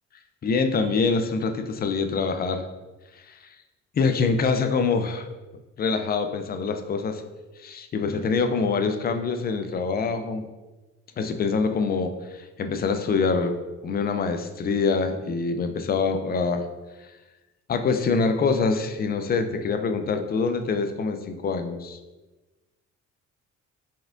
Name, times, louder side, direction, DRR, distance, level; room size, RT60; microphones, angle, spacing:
voice 1, 0.4-2.6 3.3-3.4 4.0-5.3 5.8-7.2 7.6-10.4 11.2-13.5 13.8-16.6 17.7-22.0, left 4 dB, 30° left, 7 dB, 0.4 m, -25 dB
4.2 x 3.4 x 2.5 m, 1.2 s
cardioid pair, 90°, 30 cm